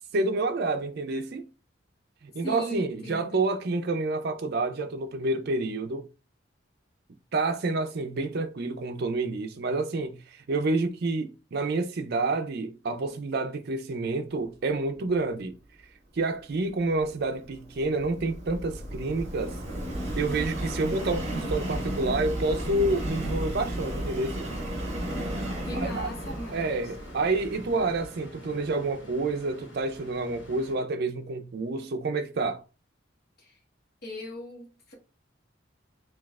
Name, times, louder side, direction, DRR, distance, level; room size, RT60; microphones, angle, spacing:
voice 1, 0.1-1.5 2.2-6.1 7.3-15.6 16.1-19.6 20.2-24.5 25.7-26.1 26.5-32.6, right 3 dB, 55° right, 0.5 m, -28 dB
voice 2, 2.4-3.4 25.6-26.9 33.4-33.6 34.0-34.9, left 1 dB, 55° left, 1.0 m, -38 dB
Subway metro underground, 16.8-28.1, right 1 dB, 35° right, 1.3 m, -34 dB
sound 1, 25.1-30.8, left 1 dB, 75° left, 1.3 m, -48 dB
6.1 x 2.3 x 2.3 m
head